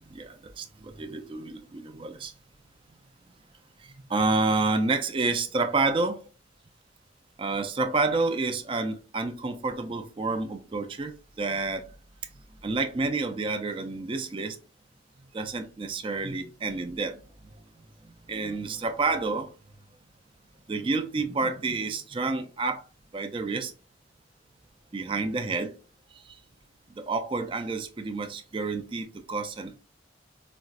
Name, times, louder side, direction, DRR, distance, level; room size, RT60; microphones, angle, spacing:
voice 1, 0.1-2.3 3.8-6.2 7.4-11.9 12.6-14.6 15.3-17.2 18.0-19.5 20.7-22.8 23.1-23.7 24.9-25.7 26.2-26.4 27.0-29.8, right 3 dB, 30° right, 0.4 m, -29 dB
4.2 x 2.4 x 2.4 m
head